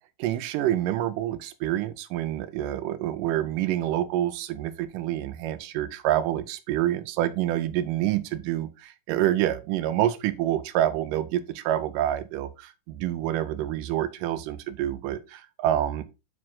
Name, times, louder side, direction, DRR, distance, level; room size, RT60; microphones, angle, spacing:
voice 1, 0.2-12.5 12.9-16.0, right 12 dB, 85° right, 2.3 m, -27 dB
6.0 x 5.1 x 3.7 m
omnidirectional pair, 3.8 m